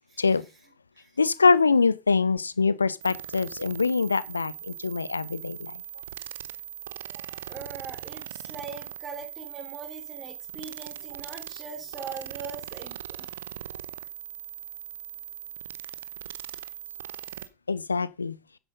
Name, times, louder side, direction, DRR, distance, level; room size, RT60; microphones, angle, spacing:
voice 1, 1.2-5.8 17.7-18.4, left 4 dB, 80° left, 0.6 m, -24 dB
sound 1, 3.0-17.5, right 11 dB, 65° right, 0.8 m, -40 dB
voice 2, 7.1-13.3, right 4 dB, 30° right, 3.2 m, -41 dB
9.8 x 8.1 x 5.3 m
figure-of-eight pair, 80°, 0 cm